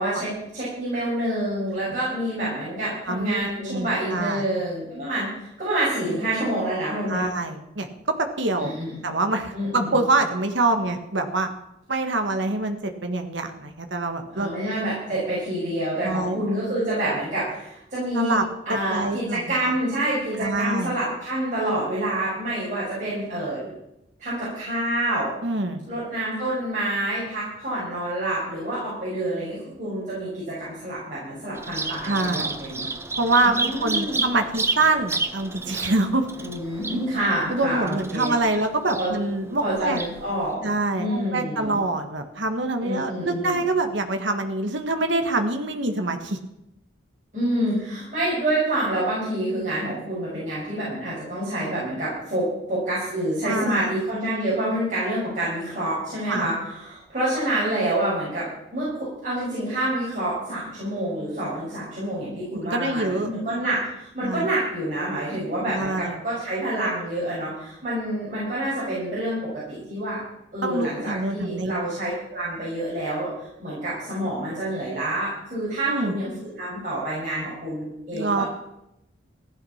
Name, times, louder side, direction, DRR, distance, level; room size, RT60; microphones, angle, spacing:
voice 1, 0.0-7.2 8.6-8.9 9.5-10.0 14.3-18.3 18.6-23.7 24.2-25.3 25.9-32.9 33.4-34.2 36.4-38.3 38.9-39.1 39.6-40.7 41.0-41.8 42.8-43.6 47.3-70.2 70.5-78.5, right 1 dB, 40° right, -9 dB, 6.7 m, -27 dB
voice 2, 3.1-4.4 7.1-8.7 9.0-11.5 11.9-14.5 16.0-16.4 18.1-18.4 18.7-19.6 20.4-20.9 25.4-25.8 32.0-32.5 33.2-36.3 37.5-40.0 40.6-46.4 53.4-53.9 56.3-56.5 62.6-63.3 64.2-64.4 65.7-66.2 70.6-71.7 75.9-76.1 78.1-78.4, right 2 dB, 70° right, 6 dB, 1.6 m, -25 dB
Bird vocalization bird call bird song, 31.6-40.5, right 3 dB, 15° right, 0.7 m, -31 dB
15.5 x 11.5 x 5.8 m, 0.84 s
head